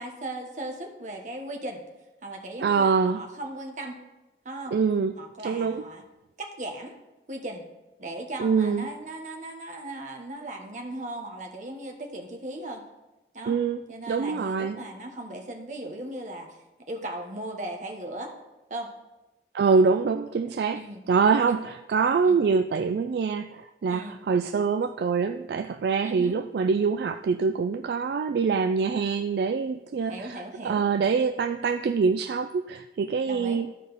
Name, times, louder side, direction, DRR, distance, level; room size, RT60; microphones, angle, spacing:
voice 1, 0.0-1.8 2.2-4.0 4.4-4.8 5.2-6.0 6.4-7.0 7.3-7.6 8.0-12.8 13.3-13.6 13.9-16.6 16.9-18.3 18.7-18.9 20.7-21.0 21.5-21.7 22.2-22.4 23.9-24.2 26.0-26.4 29.9-30.8 33.3-33.6, right 1 dB, 45° right, 3 dB, 1.1 m, -37 dB
voice 2, 2.6-3.2 4.7-5.1 5.4-5.8 8.4-8.9 13.5-13.8 14.1-14.8 19.5-20.8 21.1-33.7, right 5 dB, 65° right, 8 dB, 0.3 m, -25 dB
13.5 x 5.0 x 4.1 m, 1.0 s
head